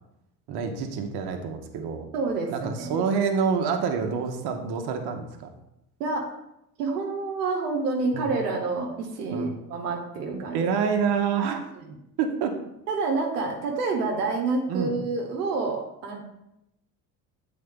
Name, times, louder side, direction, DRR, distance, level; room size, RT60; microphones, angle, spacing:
voice 1, 0.5-2.1 2.5-5.5 8.1-8.3 9.3-9.6 10.3-11.7 12.2-12.6 14.7-15.0, right 6 dB, 55° right, 4 dB, 1.0 m, -27 dB
voice 2, 2.1-3.0 6.0-6.3 6.8-10.6 11.8-11.9 12.9-16.2, right 3 dB, 85° right, 1 dB, 0.9 m, -28 dB
7.6 x 4.0 x 3.6 m, 0.84 s
hypercardioid pair, 60°, 46 cm